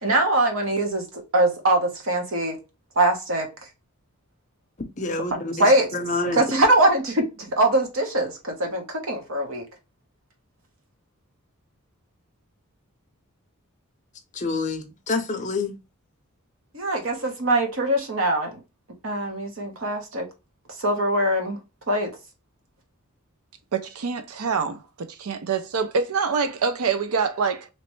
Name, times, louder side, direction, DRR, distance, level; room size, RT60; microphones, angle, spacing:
voice 1, 0.0-2.6 3.0-3.5 5.3-5.9 6.3-9.6 16.7-18.6 19.0-20.2 20.8-21.6 21.9-22.1, right 1 dB, 60° right, 1.1 m, -22 dB
voice 2, 5.0-6.4 14.3-15.7, left 3 dB, 35° left, 0.6 m, -28 dB
voice 3, 23.7-27.7, right 5 dB, 80° right, 0.5 m, -25 dB
3.1 x 3.0 x 3.1 m
head